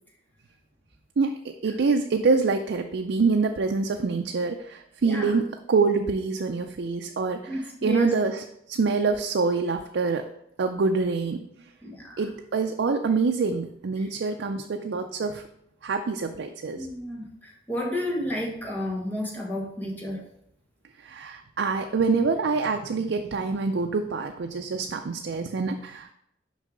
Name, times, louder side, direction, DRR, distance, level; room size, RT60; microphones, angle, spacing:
voice 1, 1.6-8.4 8.7-10.2 10.6-11.4 12.2-15.4 15.8-16.9 21.1-26.1, right 4 dB, 80° right, 4 dB, 0.4 m, -25 dB
voice 2, 5.0-5.3 7.4-8.1 11.8-12.3 14.0-14.1 16.7-20.2, equal, 10° left, -3 dB, 1.4 m, -31 dB
6.4 x 5.4 x 3.8 m, 0.75 s
head